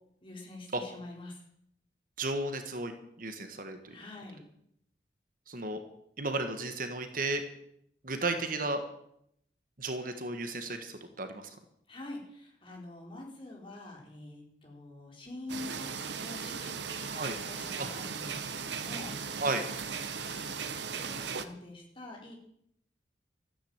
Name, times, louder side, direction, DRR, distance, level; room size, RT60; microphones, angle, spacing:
voice 1, 0.2-1.4 3.8-4.4 11.9-19.1 20.2-22.4, left 2 dB, 30° left, -1 dB, 4.4 m, -46 dB
voice 2, 2.2-4.0 5.5-5.8 6.2-7.4 8.0-8.8 9.8-11.6 17.1-17.4 17.8-17.9 19.4-19.6, right 2 dB, 45° right, 7 dB, 1.7 m, -34 dB
sound 1, 15.5-21.5, right 6 dB, 70° right, 1.2 m, -37 dB
14.0 x 9.6 x 8.9 m, 0.74 s
head